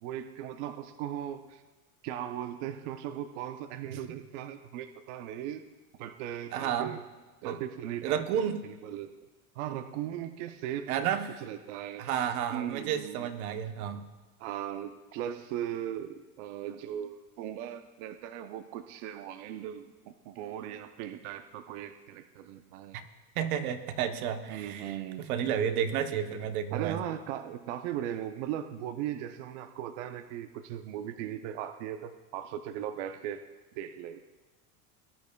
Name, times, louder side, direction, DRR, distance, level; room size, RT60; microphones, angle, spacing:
voice 1, 0.0-1.6 2.0-5.6 6.0-7.0 7.4-8.2 8.8-9.1 9.6-11.1 11.4-13.3 14.4-23.0 24.5-25.3 26.7-33.5 33.7-34.3, right 11 dB, 60° right, 9 dB, 0.6 m, -38 dB
voice 2, 6.5-7.0 7.4-7.6 8.0-8.6 10.9-11.4 12.0-14.0 22.9-23.0 23.3-27.0, right 9 dB, 90° right, 7 dB, 1.0 m, -31 dB
19.5 x 10.5 x 2.2 m, 1.2 s
supercardioid pair, 170°, 42 cm